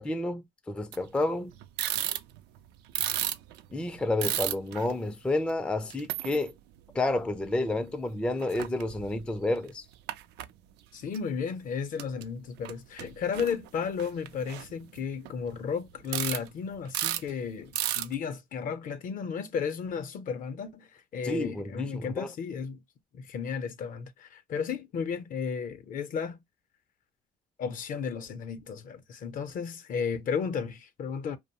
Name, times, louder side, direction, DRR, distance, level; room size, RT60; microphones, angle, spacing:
voice 1, 0.0-1.5 3.7-6.5 6.9-9.9 21.2-22.3, left 2 dB, 5° left, 0.4 m, -30 dB
sound 1, 0.9-1.2 1.5-2.6 2.9-4.9 5.5-5.6 5.9-6.5 7.0-7.8 8.0-8.1 8.3-9.3 9.6-10.5 11.1-11.2 12.0-12.3 12.6-12.7 13.0-15.6 16.1-16.5 16.7-17.3 17.7-18.1, right 13 dB, 85° right, 0.4 m, -33 dB
voice 2, 10.9-22.8 23.1-26.4 27.6-31.4, left 6 dB, 55° left, 0.6 m, -34 dB
2.6 x 2.0 x 2.8 m
cardioid pair, 110°, 17 cm